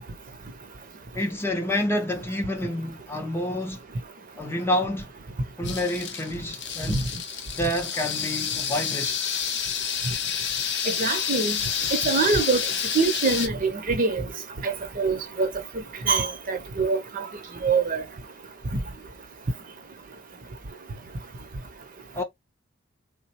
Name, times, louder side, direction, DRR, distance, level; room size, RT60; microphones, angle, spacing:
voice 1, 1.1-3.8 4.4-5.1 5.6-7.1 7.6-9.4 22.1-22.2, left 1 dB, 10° left, 0.5 m, -28 dB
sound 1, 5.6-13.5, left 7 dB, 60° left, 0.6 m, -29 dB
voice 2, 10.9-11.6 12.0-12.6 12.9-14.2 14.6-15.5 16.1-17.3 17.6-18.0, right 4 dB, 45° right, 0.6 m, -24 dB
3.5 x 2.0 x 2.8 m
head